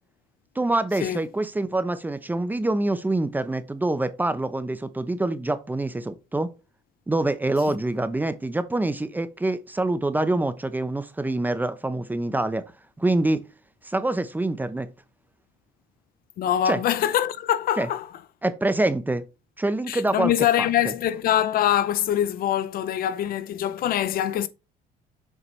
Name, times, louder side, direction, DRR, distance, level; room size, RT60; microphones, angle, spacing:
voice 1, 0.6-6.5 7.1-12.6 13.0-13.4 13.9-14.9 16.6-16.8 17.8-17.9 18.4-19.2 19.6-20.3 20.6-20.9, right 2 dB, 10° right, 0.6 m, -25 dB
voice 2, 16.4-18.1 19.9-24.5, left 11 dB, 60° left, 0.5 m, -24 dB
6.8 x 4.3 x 3.2 m
cardioid pair, 110°, 17 cm